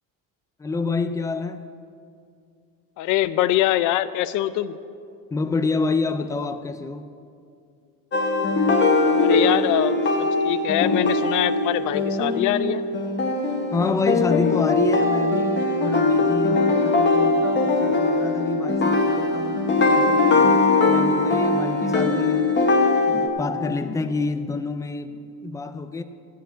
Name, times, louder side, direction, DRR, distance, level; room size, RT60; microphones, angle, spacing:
voice 1, 0.6-1.6 5.3-7.1 13.7-22.5 23.1-26.0, left 4 dB, 10° left, 0.4 m, -28 dB
voice 2, 3.0-4.8 9.2-12.8, left 14 dB, 60° left, 0.6 m, -23 dB
sound 1, 8.1-23.3, left 3 dB, 30° left, 1.4 m, -21 dB
15.5 x 5.6 x 8.6 m
cardioid pair, 140°, 34 cm